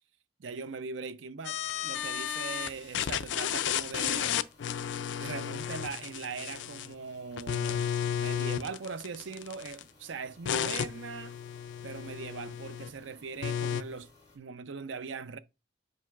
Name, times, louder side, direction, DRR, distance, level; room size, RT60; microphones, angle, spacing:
voice 1, 0.4-4.4 5.2-11.4 11.8-14.1 14.3-15.4, right 5 dB, 85° right, 0.6 m, -40 dB
sound 1, 1.4-2.7 2.9-6.9 7.4-9.8 10.5-12.9 13.4-13.8, left 9 dB, 75° left, 0.4 m, -33 dB
sound 2, 2.5-14.4, left 2 dB, 20° left, 2.5 m, -59 dB
7.5 x 5.4 x 2.4 m
head